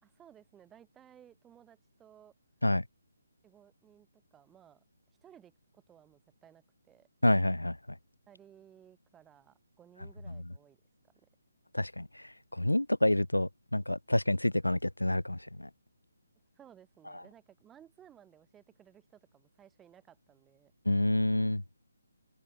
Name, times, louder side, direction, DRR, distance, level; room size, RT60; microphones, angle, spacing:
voice 1, 0.0-2.3 3.4-4.8 5.2-7.1 8.3-10.8 11.0-11.3 16.6-20.7, right 10 dB, 10° right, 2.5 m, -59 dB
voice 2, 7.2-7.8 11.7-12.2 12.5-15.7 20.9-21.6, left 1 dB, 90° left, 0.5 m, -28 dB
open air
figure-of-eight pair, 145°, 0 cm